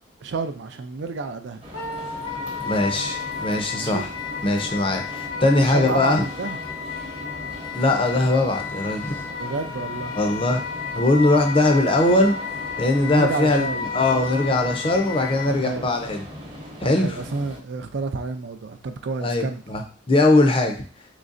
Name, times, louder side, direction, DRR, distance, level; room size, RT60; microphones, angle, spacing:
voice 1, 0.2-1.6 3.8-4.1 5.6-6.6 9.4-10.1 13.0-13.9 15.4-15.9 16.8-19.6, right 4 dB, 60° right, 0.4 m, -30 dB
sound 1, 1.6-17.6, equal, 30° right, 0.8 m, -39 dB
Wind instrument woodwind instrument, 1.7-15.5, left 5 dB, 85° left, 0.7 m, -33 dB
voice 2, 2.6-4.1 4.4-6.2 7.7-9.2 10.2-10.6 10.9-12.4 12.8-16.2 16.8-17.2 19.2-20.8, left 2 dB, 25° left, 0.5 m, -20 dB
3.9 x 3.1 x 2.5 m
head